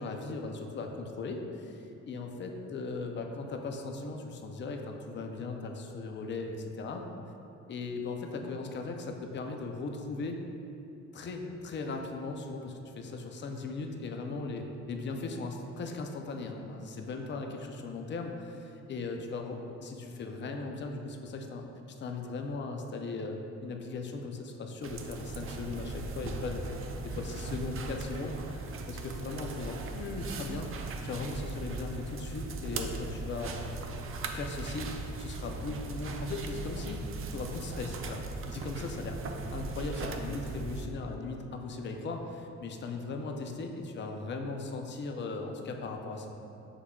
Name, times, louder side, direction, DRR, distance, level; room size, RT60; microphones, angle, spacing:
voice 1, 0.0-7.0 7.7-10.4 11.1-21.7 22.0-26.8 27.0-33.6 34.3-37.0 37.3-39.2 39.5-46.4, left 3 dB, 40° left, 3 dB, 0.5 m, -38 dB
sound 1, 24.8-40.9, right 3 dB, 45° right, 0.4 m, -38 dB
6.3 x 3.5 x 2.3 m, 2.8 s
cardioid pair, 90°, 30 cm